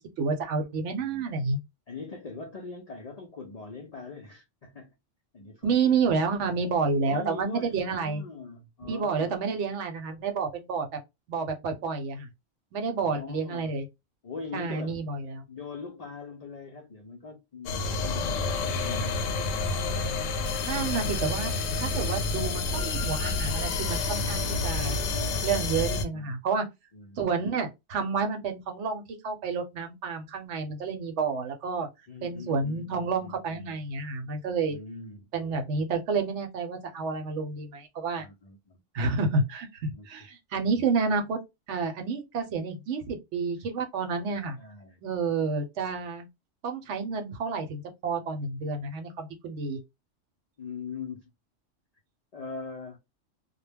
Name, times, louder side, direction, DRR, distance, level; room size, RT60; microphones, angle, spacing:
voice 1, 0.2-1.6 5.6-8.2 8.9-11.0 11.3-12.3 12.7-13.9 14.5-15.4 20.6-21.5 21.8-25.0 25.4-26.7 27.2-31.9 32.2-34.8 35.3-38.3 38.9-41.4 41.7-44.6 45.0-46.3 46.6-49.8, right 4 dB, 70° right, 0.9 m, -29 dB
voice 2, 1.9-4.9 5.3-5.9 6.4-6.6 7.0-9.3 13.0-13.8 14.2-15.0 15.5-19.6 26.1-26.4 26.9-27.3 32.1-33.8 34.7-35.3 38.2-38.8 39.9-40.1 44.6-45.0 50.6-51.3 52.3-53.0, left 4 dB, 65° left, 0.4 m, -42 dB
sound 1, 17.7-26.1, left 3 dB, 90° left, 1.0 m, -29 dB
2.2 x 2.0 x 3.2 m
omnidirectional pair, 1.3 m